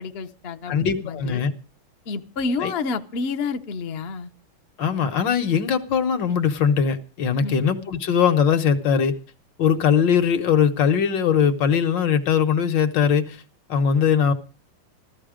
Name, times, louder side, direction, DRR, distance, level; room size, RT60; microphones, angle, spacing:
voice 1, 0.0-1.4 2.1-4.3 7.3-7.6, left 4 dB, 45° left, 0.8 m, -29 dB
voice 2, 0.7-1.5 2.6-2.7 4.8-9.1 9.6-13.4 13.7-14.3, left 7 dB, 65° left, 1.7 m, -20 dB
15.0 x 13.5 x 5.0 m
omnidirectional pair, 2.2 m